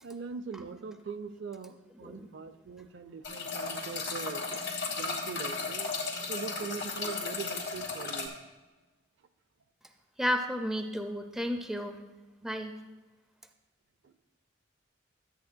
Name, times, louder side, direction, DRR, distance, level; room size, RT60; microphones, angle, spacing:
voice 1, 0.0-4.7 5.0-5.9 6.3-8.4 14.0-14.3, right 5 dB, 60° right, 10 dB, 0.5 m, -41 dB
sound 1, 3.2-8.3, left 4 dB, 60° left, 1.8 m, -35 dB
voice 2, 10.2-12.0 12.4-12.8, equal, ahead, 5 dB, 0.4 m, -32 dB
13.0 x 8.3 x 2.2 m, 1.2 s
head